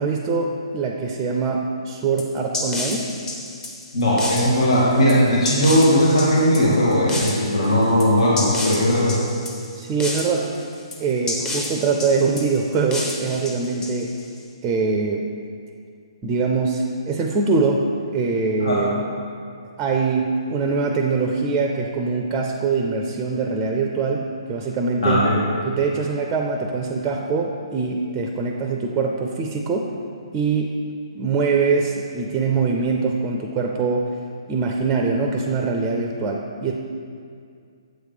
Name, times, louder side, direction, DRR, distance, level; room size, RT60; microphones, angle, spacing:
voice 1, 0.0-3.1 9.7-10.5 11.0-14.1 14.6-15.2 16.2-19.0 19.8-25.2 25.6-29.9 30.3-30.7 31.1-34.1 34.5-36.7, right 4 dB, 20° right, 1 dB, 0.4 m, -23 dB
sound 1, 2.2-14.4, left 2 dB, 15° left, 0.7 m, -31 dB
voice 2, 3.9-9.2 18.6-18.8 25.0-25.4, equal, 75° left, -6 dB, 1.2 m, -18 dB
7.7 x 3.2 x 5.1 m, 2.3 s
hypercardioid pair, 140°, 3 cm